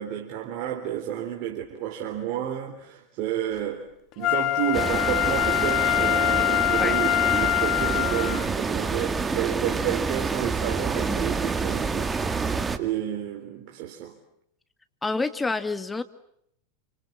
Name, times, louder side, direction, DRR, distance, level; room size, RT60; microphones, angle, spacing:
voice 1, 0.0-14.2, right 11 dB, 55° right, 3.9 m, -31 dB
Wind instrument woodwind instrument, 4.2-8.5 9.0-9.1, left 15 dB, 45° left, 1.4 m, -24 dB
sound 1, 4.7-12.8, right 4 dB, 15° right, 2.3 m, -28 dB
voice 2, 15.0-16.0, left 3 dB, 15° left, 2.2 m, -28 dB
29.5 x 26.5 x 7.3 m
hypercardioid pair, 95°, 0 cm